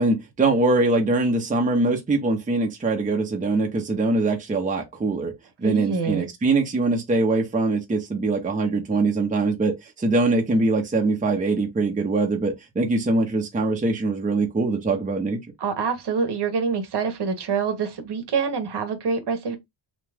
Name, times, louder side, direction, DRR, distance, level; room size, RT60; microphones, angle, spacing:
voice 1, 0.0-5.3 5.6-15.4, right 3 dB, 15° right, 0.6 m, -23 dB
voice 2, 5.6-6.3 15.6-19.6, right 5 dB, 55° right, 0.9 m, -26 dB
2.9 x 2.2 x 3.4 m
wide cardioid pair, 140°, 48 cm